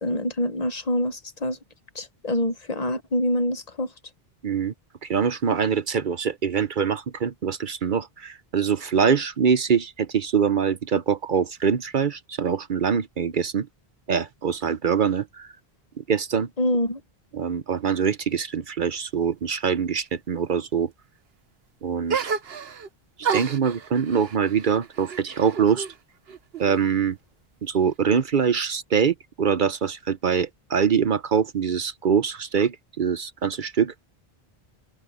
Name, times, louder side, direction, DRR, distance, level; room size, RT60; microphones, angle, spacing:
voice 1, 0.0-1.6 2.0-3.9 16.6-17.0, left 1 dB, 40° left, 1.0 m, -25 dB
voice 2, 4.4-4.7 5.0-13.7 14.1-15.5 16.0-16.5 17.3-20.9 21.8-22.2 23.2-25.9 26.6-27.2 27.6-33.9, right 7 dB, 55° right, 0.8 m, -24 dB
sound 1, 22.1-22.9 23.2-26.0 26.3-27.1, right 6 dB, 75° right, 1.3 m, -31 dB
omnidirectional pair, 1.0 m